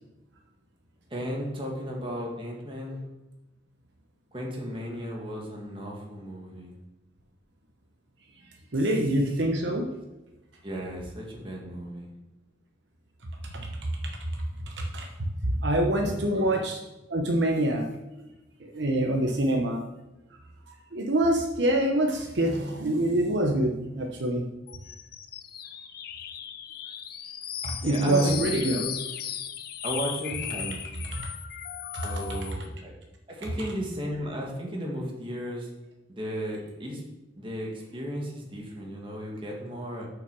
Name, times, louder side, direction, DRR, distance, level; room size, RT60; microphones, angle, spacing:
voice 1, 1.1-3.0 4.3-6.7 10.6-12.1 16.3-16.5 27.8-29.0 29.8-30.8 32.0-32.9 33.3-35.7 36.1-37.0 37.4-40.1, equal, 25° right, -1 dB, 1.7 m, -35 dB
voice 2, 8.7-9.9 13.4-13.7 14.0-16.8 17.1-18.2 18.6-19.8 20.9-24.4 27.6-28.8 31.1-31.3 31.9-32.1 33.6-33.7, right 1 dB, 65° right, 2 dB, 0.9 m, -26 dB
sound 1, 24.7-32.7, left 9 dB, 50° left, 0.6 m, -37 dB
6.8 x 5.9 x 6.0 m, 1.0 s
head